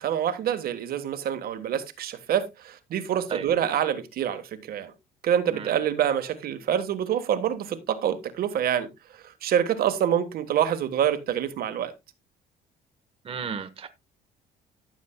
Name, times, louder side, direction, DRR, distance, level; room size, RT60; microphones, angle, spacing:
voice 1, 0.0-4.9 5.2-11.9, right 9 dB, 60° right, 1.4 m, -26 dB
voice 2, 13.2-13.9, right 6 dB, 35° right, 1.1 m, -33 dB
14.0 x 7.2 x 2.2 m
cardioid pair, 110°, 17 cm